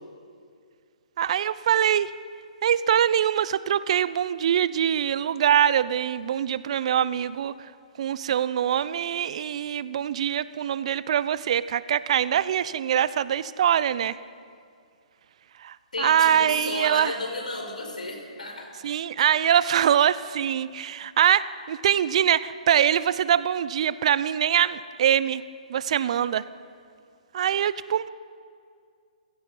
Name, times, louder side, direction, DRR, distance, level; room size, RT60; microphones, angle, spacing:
voice 1, 1.2-2.1 2.6-7.7 8.0-14.2 15.6-17.2 18.8-25.4 25.7-26.4 27.3-28.1, right 9 dB, 55° right, 17 dB, 0.7 m, -23 dB
voice 2, 15.9-18.7, left 2 dB, 80° left, 2 dB, 5.1 m, -33 dB
29.0 x 16.5 x 5.5 m, 2.3 s
figure-of-eight pair, 130°, 4 cm